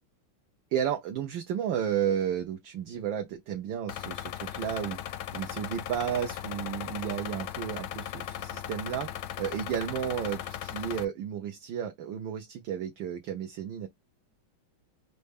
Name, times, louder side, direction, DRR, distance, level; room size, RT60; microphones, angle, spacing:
voice 1, 0.7-5.0 5.3-9.1 9.4-13.9, right 9 dB, 70° right, 1.3 m, -32 dB
sound 1, 3.9-11.0, left 11 dB, 70° left, 1.1 m, -38 dB
5.3 x 2.2 x 3.4 m
omnidirectional pair, 2.3 m